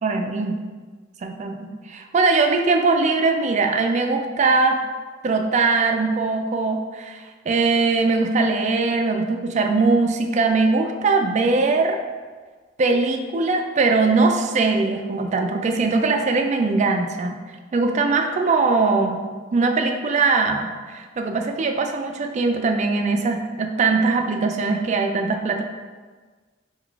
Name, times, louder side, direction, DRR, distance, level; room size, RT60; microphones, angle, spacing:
voice 1, 0.0-0.6 1.2-4.8 5.2-12.0 12.8-17.4 17.7-19.2 19.5-25.6, right 3 dB, 35° right, 4 dB, 0.3 m, -21 dB
3.9 x 2.3 x 4.5 m, 1.4 s
head